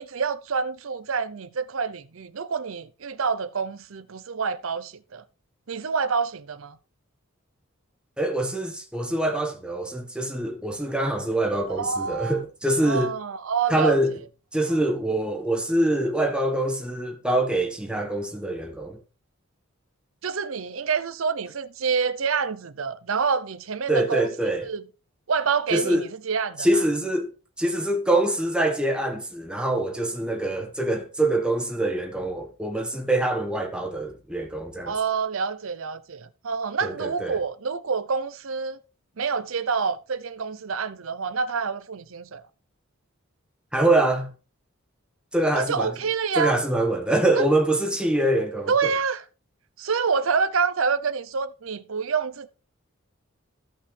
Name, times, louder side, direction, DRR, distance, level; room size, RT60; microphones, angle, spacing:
voice 1, 0.0-5.2 5.7-6.8 11.7-12.4 12.8-14.0 20.2-24.9 25.3-26.7 34.9-38.8 39.2-42.4 45.5-46.6 47.3-47.5 48.7-49.2 49.8-52.5, right 5 dB, 70° right, 0.7 m, -27 dB
voice 2, 8.2-13.1 13.7-14.1 14.5-19.0 23.9-24.7 25.7-26.0 26.6-27.3 27.6-34.9 36.8-37.4 43.7-44.3 45.3-45.9 46.4-48.9, right 1 dB, 5° right, 1.3 m, -24 dB
15.0 x 5.5 x 3.3 m
head